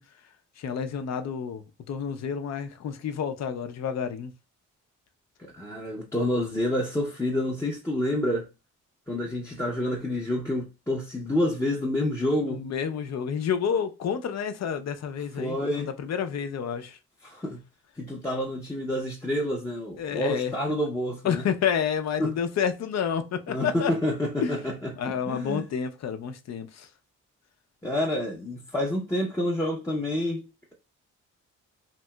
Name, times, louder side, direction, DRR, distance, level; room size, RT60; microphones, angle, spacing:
voice 1, 0.6-4.3 12.6-17.0 20.0-20.5 21.2-23.9 24.4-24.6 25.0-26.9, left 7 dB, 55° left, 0.5 m, -29 dB
voice 2, 5.4-8.5 9.1-12.6 15.4-15.9 17.2-17.6 18.0-21.5 22.2-22.3 23.5-24.9 25.3-25.6 27.8-30.5, left 1 dB, 10° left, 0.6 m, -28 dB
2.9 x 2.7 x 2.2 m
cardioid pair, 65°, 31 cm